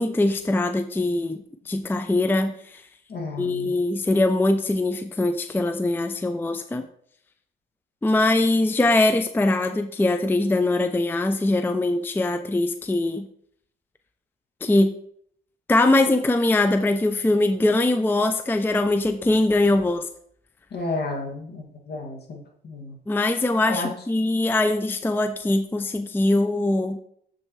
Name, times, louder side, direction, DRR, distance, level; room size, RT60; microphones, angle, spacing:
voice 1, 0.0-2.8 3.4-6.9 8.0-13.3 14.6-14.9 15.7-20.1 23.1-27.0, left 2 dB, 10° left, 8 dB, 0.4 m, -22 dB
voice 2, 3.1-3.8 20.7-23.0 23.7-23.9, left 3 dB, 55° left, 0 dB, 2.1 m, -32 dB
7.4 x 6.5 x 3.1 m, 0.67 s
cardioid pair, 90°, 20 cm